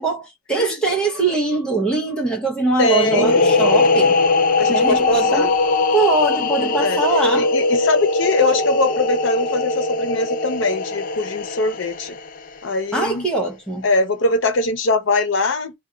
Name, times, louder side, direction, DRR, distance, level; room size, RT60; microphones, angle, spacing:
voice 1, 0.0-4.3 4.7-7.5 12.9-13.9, right 3 dB, 5° left, 0.7 m, -22 dB
voice 2, 2.8-3.5 4.6-5.5 6.4-7.0 7.4-12.2 12.6-13.3 13.8-15.7, left 3 dB, 75° left, 0.7 m, -22 dB
sound 1, 3.0-12.5, left 3 dB, 40° left, 0.3 m, -20 dB
2.4 x 2.2 x 3.8 m
head